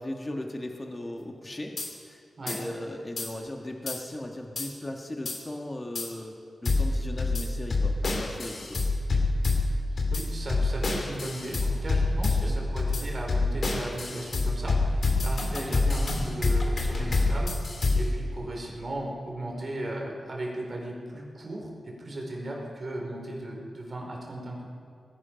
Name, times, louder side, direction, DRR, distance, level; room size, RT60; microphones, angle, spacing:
voice 1, 0.0-1.8 2.0-8.8 12.4-12.5 15.6-15.8, left 1 dB, 30° left, 2 dB, 1.5 m, -37 dB
sound 1, 1.8-1.9 2.5-2.6 3.2-3.3 3.9-4.0 4.6-4.7 5.2-5.4 5.9-6.1 6.6-18.2, left 2 dB, 60° left, 2.4 m, -26 dB
voice 2, 9.9-17.7 17.9-24.6, right 1 dB, 50° right, -1 dB, 4.2 m, -36 dB
19.5 x 11.0 x 5.1 m, 2.4 s
cardioid pair, 55°, 0 cm